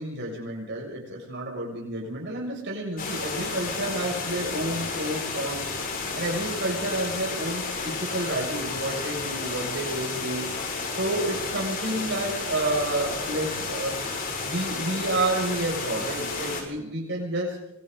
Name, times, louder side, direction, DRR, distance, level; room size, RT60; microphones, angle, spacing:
voice 1, 0.0-5.6 6.1-10.5 10.9-14.0 14.4-17.6, right 1 dB, 60° right, -2 dB, 7.6 m, -30 dB
sound 1, 3.0-16.6, left 4 dB, 45° left, 6.4 m, -32 dB
27.0 x 25.0 x 4.2 m, 0.83 s
head